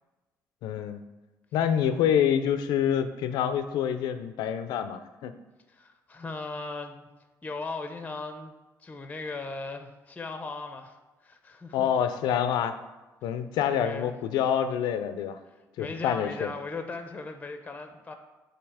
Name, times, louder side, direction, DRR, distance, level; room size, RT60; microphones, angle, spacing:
voice 1, 0.6-1.0 1.5-5.4 11.7-12.7 13.2-15.4 15.8-16.5, left 9 dB, 90° left, 10 dB, 0.5 m, -27 dB
voice 2, 5.7-7.1 7.4-8.5 8.8-11.9 13.7-14.2 15.8-18.1, left 3 dB, 20° left, 7 dB, 0.7 m, -38 dB
7.2 x 2.8 x 4.8 m, 1.1 s
cardioid pair, 100°, 7 cm